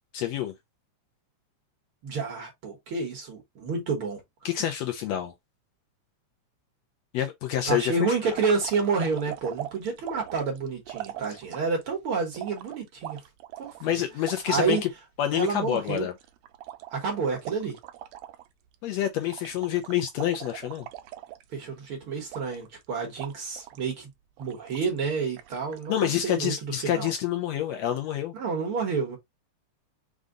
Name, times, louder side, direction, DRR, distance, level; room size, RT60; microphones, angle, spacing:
voice 1, 0.1-0.5 4.5-5.3 7.1-8.4 13.8-14.9 15.2-16.1 18.8-20.9 25.9-28.3, left 11 dB, 75° left, 1.7 m, -27 dB
voice 2, 2.0-4.2 7.7-13.2 13.6-14.0 14.5-14.8 15.3-16.1 16.9-17.8 21.5-24.1 24.4-27.1 28.3-29.2, right 5 dB, 55° right, 1.8 m, -29 dB
sound 1, 8.2-11.8 12.3-14.9 15.2-15.3 15.5-18.5 18.7-19.0 19.3-21.8 22.3-22.8 23.2-23.9 24.4-25.0 25.4-25.9, right 13 dB, 80° right, 1.7 m, -41 dB
5.3 x 2.3 x 3.7 m
omnidirectional pair, 3.4 m